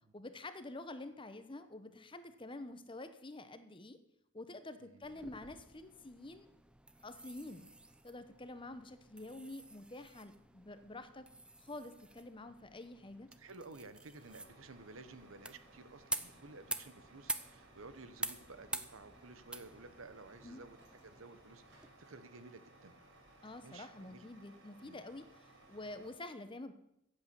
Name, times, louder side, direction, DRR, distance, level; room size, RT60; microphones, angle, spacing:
voice 1, 0.1-4.0 4.3-6.5 7.0-7.7 8.0-11.3 11.6-13.3 20.4-20.6 23.4-26.7, left 2 dB, 25° left, 10 dB, 1.0 m, -48 dB
voice 2, 4.8-5.3 13.4-20.8 21.0-22.9 23.6-24.2 24.8-25.0, right 3 dB, 85° right, 12 dB, 1.1 m, -54 dB
sound 1, 5.0-21.9, right 2 dB, 5° right, 0.6 m, -48 dB
Truck, 14.1-26.1, right 2 dB, 60° right, 4.7 m, -61 dB
15.5 x 8.2 x 7.0 m, 0.81 s
head